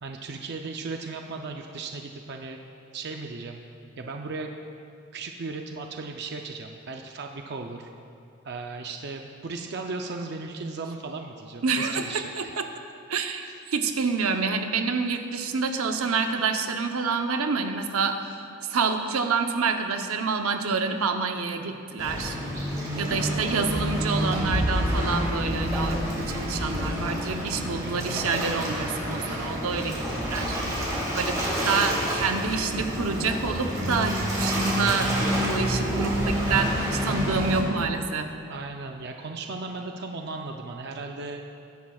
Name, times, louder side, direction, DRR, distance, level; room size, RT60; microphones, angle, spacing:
voice 1, 0.0-2.6 2.9-3.6 4.0-4.5 5.1-7.9 8.4-12.5 13.4-13.5 23.1-23.4 38.5-41.4, right 3 dB, 50° right, 3 dB, 0.5 m, -36 dB
voice 2, 11.6-12.4 13.1-18.2 18.7-22.4 22.9-30.6 31.1-31.4 31.7-35.1 35.5-38.3, right 4 dB, 80° right, 5 dB, 0.8 m, -27 dB
Waves surf, 22.0-37.6, equal, 15° right, 2.9 m, -28 dB
21.0 x 10.5 x 2.4 m, 2.6 s
head